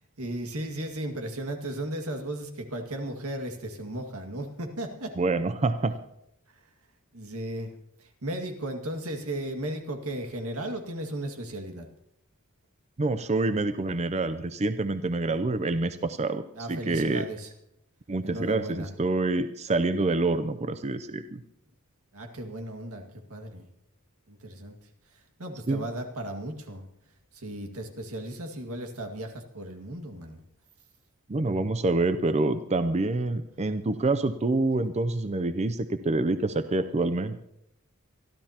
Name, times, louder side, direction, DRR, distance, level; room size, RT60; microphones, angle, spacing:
voice 1, 0.2-5.1 7.1-11.9 15.3-15.5 16.6-17.5 18.2-18.9 22.1-23.0 23.3-23.7 24.3-24.8 25.1-26.9 27.3-30.4, right 1 dB, 90° right, 4 dB, 2.0 m, -35 dB
voice 2, 5.2-5.9 13.0-16.4 16.7-17.3 18.1-21.4 25.7-25.8 31.3-37.4, right 2 dB, 30° right, 11 dB, 0.5 m, -27 dB
25.5 x 12.5 x 2.9 m, 0.79 s
head